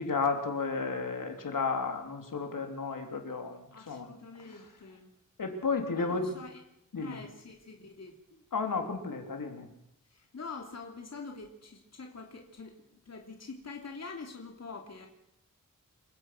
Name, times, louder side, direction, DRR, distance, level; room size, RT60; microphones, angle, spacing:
voice 1, 0.0-4.1 4.5-4.6 5.4-6.3 6.9-7.2 8.5-9.7, left 4 dB, 75° left, 4 dB, 3.6 m, -33 dB
voice 2, 3.7-5.1 5.9-6.6 7.0-8.1 10.1-12.7 13.0-15.1, left 4 dB, 50° left, 2 dB, 3.1 m, -45 dB
28.0 x 16.5 x 6.1 m, 0.82 s
wide cardioid pair, 135°, 33 cm